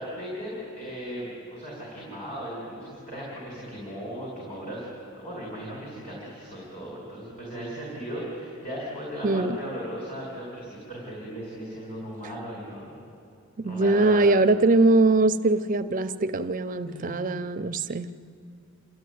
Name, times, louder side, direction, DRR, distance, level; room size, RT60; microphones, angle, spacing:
voice 1, 0.0-4.8 5.1-12.9 13.6-14.2 16.9-17.2, equal, 30° left, -5 dB, 5.4 m, -37 dB
voice 2, 9.2-9.6 13.6-18.1, right 2 dB, 35° right, 10 dB, 0.5 m, -22 dB
28.0 x 14.0 x 9.3 m, 2.6 s
head